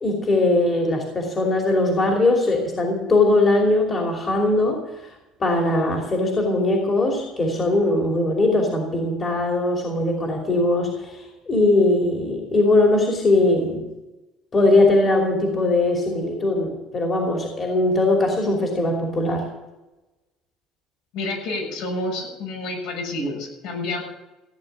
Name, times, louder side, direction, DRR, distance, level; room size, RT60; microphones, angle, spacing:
voice 1, 0.0-4.8 5.4-13.9 14.5-19.5, left 2 dB, 25° left, 1 dB, 2.8 m, -20 dB
voice 2, 21.1-24.0, left 2 dB, 70° left, 1 dB, 6.8 m, -29 dB
16.0 x 9.5 x 9.0 m, 1.1 s
cardioid pair, 160°, 0 cm